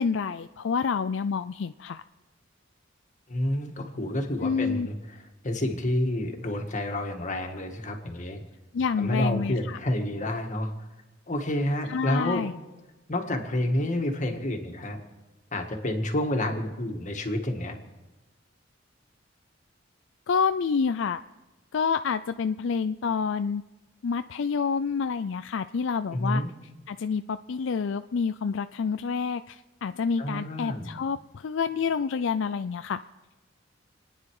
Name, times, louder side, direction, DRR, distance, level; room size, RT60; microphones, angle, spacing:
voice 1, 0.0-2.0 4.4-4.9 8.7-9.8 11.9-12.5 20.3-21.2 21.7-23.6 24.0-26.4 26.9-33.0, left 5 dB, 70° left, 10 dB, 0.4 m, -28 dB
voice 2, 3.3-5.0 5.4-8.4 9.0-10.7 11.3-12.4 13.1-15.0 15.5-17.8 26.1-26.5 30.2-30.9, left 1 dB, 40° left, 4 dB, 1.9 m, -29 dB
28.5 x 9.9 x 4.9 m, 1.1 s
head